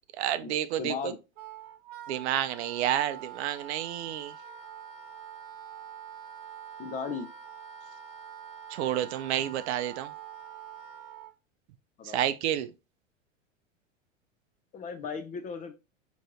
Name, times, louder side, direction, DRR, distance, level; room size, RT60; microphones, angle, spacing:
voice 1, 0.2-1.1 2.1-4.3 8.7-10.1 12.1-12.7, right 11 dB, 60° right, 0.5 m, -30 dB
voice 2, 0.8-1.2 6.8-7.3 12.0-12.3 14.7-15.7, left 5 dB, 20° left, 0.4 m, -36 dB
Wind instrument woodwind instrument, 1.4-11.3, right 8 dB, 40° right, 0.8 m, -45 dB
4.2 x 3.0 x 2.5 m
hypercardioid pair, 95°, 38 cm